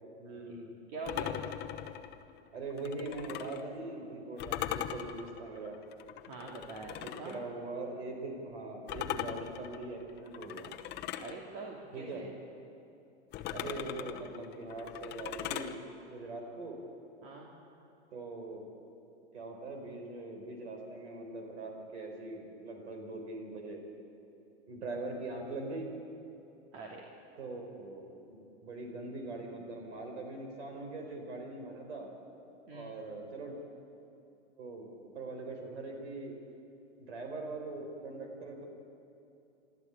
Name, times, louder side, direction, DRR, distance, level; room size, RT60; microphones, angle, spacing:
voice 1, 0.2-0.7 2.5-5.8 7.0-10.7 11.9-12.2 13.5-16.8 18.1-18.6 19.3-23.8 24.7-25.9 27.4-32.1 32.7-33.6 34.6-36.3 37.0-38.7, right 2 dB, 75° right, 3 dB, 4.8 m, -42 dB
voice 2, 0.9-1.3 6.2-7.4 11.2-12.3 17.2-17.5 26.7-27.0 32.7-32.9, right 3 dB, 50° right, -2 dB, 3.0 m, -44 dB
sound 1, 1.1-3.6 4.4-7.4 8.9-11.4 13.3-15.7, left 11 dB, 30° left, 1.0 m, -40 dB
25.0 x 13.5 x 8.5 m, 2.8 s
hypercardioid pair, 130°, 34 cm